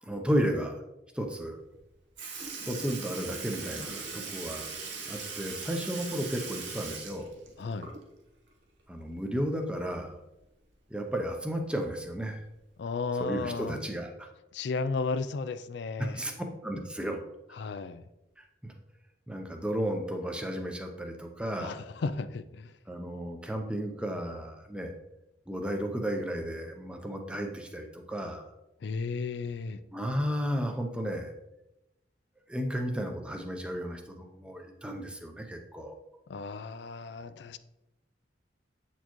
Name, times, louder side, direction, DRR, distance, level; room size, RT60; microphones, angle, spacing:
voice 1, 0.0-0.7 1.1-1.6 2.7-4.7 5.1-7.3 8.9-10.2 10.9-12.4 13.2-14.3 16.0-16.3 16.6-17.2 18.4-18.7 19.3-21.8 22.9-24.9 25.5-28.5 29.9-31.3 32.5-35.9, equal, 5° right, 4 dB, 0.6 m, -33 dB
Sink (filling or washing) / Liquid, 1.7-1.8 2.2-8.3 8.6-8.7 10.3-10.4 11.3-11.4 12.2-12.4 13.2-13.3, right 4 dB, 80° right, 1.1 m, -40 dB
voice 2, 7.6-7.9 12.8-13.8 14.5-16.2 17.5-18.0 21.6-22.7 28.8-29.8 36.3-37.6, left 4 dB, 65° left, 14 dB, 0.4 m, -34 dB
8.2 x 4.4 x 3.0 m, 0.92 s
head